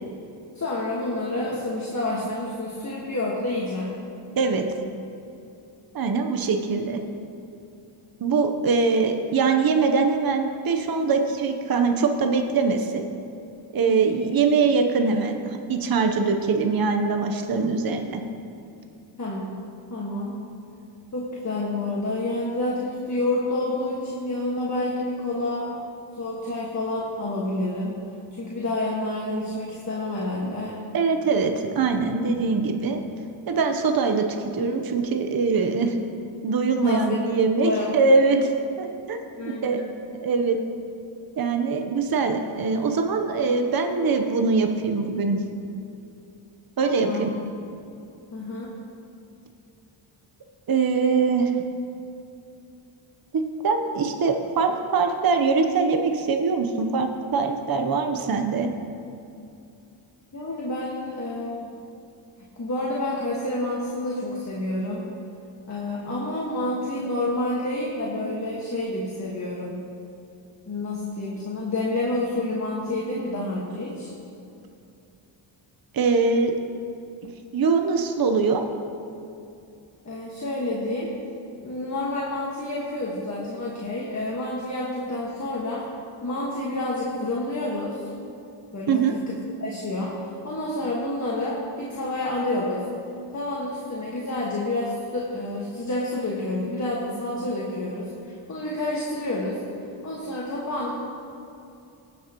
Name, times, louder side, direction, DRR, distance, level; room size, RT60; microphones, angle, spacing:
voice 1, 0.5-4.0 13.9-14.3 19.2-19.6 19.9-20.4 21.1-25.7 26.2-27.9 28.3-30.8 36.8-37.2 37.6-38.0 38.4-38.5 39.4-39.9 46.9-47.3 48.3-48.8 60.3-61.8 62.6-65.1 65.7-69.8 70.7-74.1 80.0-81.1 81.6-85.9 86.2-88.0 88.7-90.2 90.4-92.8 93.3-99.6 100.0-100.9, left 2 dB, 35° left, -5 dB, 1.6 m, -29 dB
voice 2, 4.4-4.7 5.9-7.0 8.2-13.1 13.7-18.2 30.9-33.0 33.5-34.3 34.5-36.0 36.4-38.5 38.8-39.2 39.6-39.8 40.2-40.6 41.4-45.4 46.8-47.3 50.7-51.5 53.3-58.7 75.9-76.5 77.5-78.6 88.9-89.1, right 4 dB, 45° right, 5 dB, 0.9 m, -22 dB
19.5 x 6.5 x 3.0 m, 2.7 s
cardioid pair, 65°, 50 cm